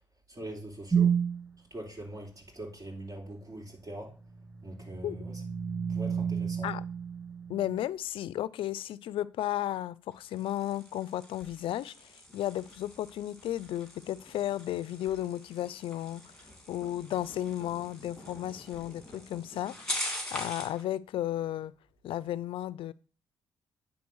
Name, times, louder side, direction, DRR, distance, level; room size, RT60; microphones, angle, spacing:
voice 1, 0.3-1.1 1.7-4.1 4.6-5.4 5.9-6.7, right 1 dB, 35° right, 3.6 m, -42 dB
sound 1, 0.9-1.5 4.3-7.8, right 7 dB, 10° right, 0.7 m, -30 dB
voice 2, 7.5-16.2 16.7-19.9 20.3-21.7 22.0-22.9, left 12 dB, 70° left, 0.4 m, -34 dB
sound 2, 10.1-20.8, left 1 dB, 5° left, 2.8 m, -43 dB
9.6 x 3.7 x 6.3 m
supercardioid pair, 70°, 9 cm